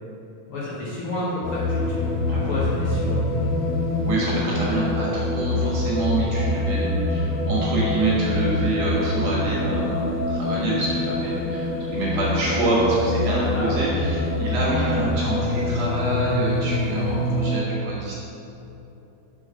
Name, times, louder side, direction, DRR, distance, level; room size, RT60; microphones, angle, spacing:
voice 1, 0.5-3.2 13.5-13.8 14.7-14.9, left 1 dB, 60° left, -7 dB, 1.7 m, -30 dB
sound 1, 1.4-17.6, left 2 dB, 75° left, 1.9 m, -25 dB
voice 2, 2.3-2.7 4.0-18.1, right 2 dB, 60° right, -6 dB, 2.5 m, -26 dB
5.8 x 4.9 x 5.5 m, 2.9 s
omnidirectional pair, 3.4 m